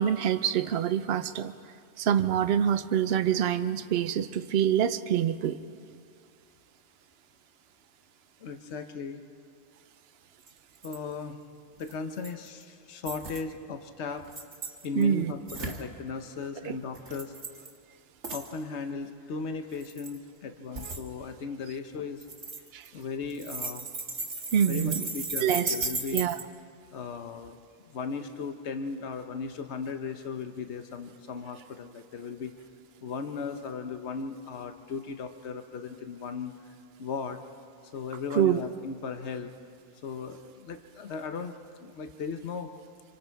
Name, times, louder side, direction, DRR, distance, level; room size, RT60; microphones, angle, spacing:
voice 1, 0.0-1.5 2.0-5.6 15.0-15.3 16.7-16.8 22.7-22.8 24.5-25.1 25.4-25.7 26.1-26.4 38.3-38.6, right 9 dB, 65° right, 11 dB, 0.9 m, -26 dB
voice 2, 8.4-9.2 10.8-11.4 11.8-14.2 14.8-17.3 18.3-22.2 22.9-23.9 24.7-26.2 26.9-27.6 27.9-32.5 33.0-37.4 37.9-39.5 40.0-41.5 41.8-42.7, left 5 dB, 70° left, 7 dB, 1.2 m, -37 dB
sound 1, 10.5-10.6 10.7-11.0 11.9-12.5 13.0-13.4 14.2-15.0 15.5-15.8 16.9-17.7 18.2-18.5 19.7-20.2 20.7-21.0 22.2-23.0 23.3-26.4, right 3 dB, 80° right, 1.9 m, -36 dB
26.0 x 24.5 x 4.6 m, 2.3 s
omnidirectional pair, 1.2 m